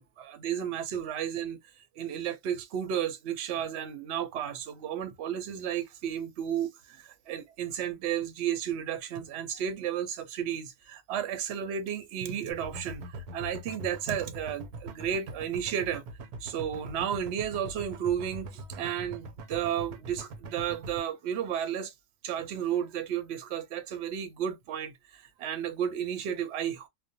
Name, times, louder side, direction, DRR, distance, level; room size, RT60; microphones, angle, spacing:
voice 1, 0.0-1.6 2.0-16.0 16.4-21.9 22.2-26.9, right 9 dB, 60° right, 0.8 m, -33 dB
sound 1, 12.5-21.0, right 1 dB, 90° right, 1.1 m, -42 dB
2.4 x 2.1 x 2.6 m
omnidirectional pair, 1.5 m